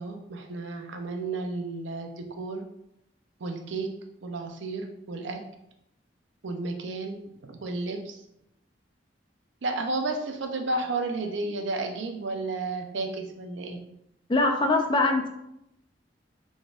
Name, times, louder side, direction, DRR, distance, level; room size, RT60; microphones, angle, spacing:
voice 1, 0.0-2.6 3.4-3.9 4.2-5.4 6.4-8.2 9.6-13.8, right 3 dB, 85° right, 4 dB, 0.6 m, -32 dB
voice 2, 14.3-15.3, left 2 dB, 25° left, 4 dB, 0.4 m, -22 dB
4.1 x 3.5 x 2.4 m, 0.80 s
head